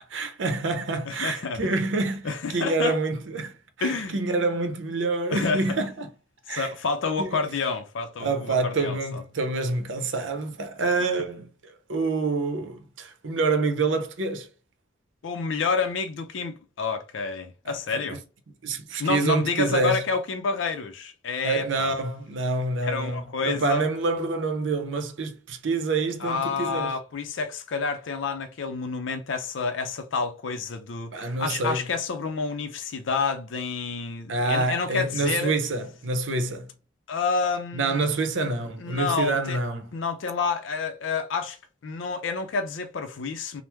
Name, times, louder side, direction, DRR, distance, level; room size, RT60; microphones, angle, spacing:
voice 1, 0.1-6.1 6.5-6.7 7.2-7.4 8.2-14.5 17.7-17.8 18.6-20.0 21.4-26.9 31.1-31.9 34.3-36.7 37.7-39.9, right 3 dB, 75° right, 0.7 m, -27 dB
voice 2, 1.1-1.7 2.2-3.0 3.8-4.2 5.3-5.8 6.5-9.2 15.2-18.2 19.0-21.9 22.8-23.9 26.2-35.5 37.1-38.0 38.8-39.6 39.9-41.6 41.8-43.6, left 4 dB, 85° left, 0.5 m, -29 dB
3.4 x 2.0 x 2.9 m
head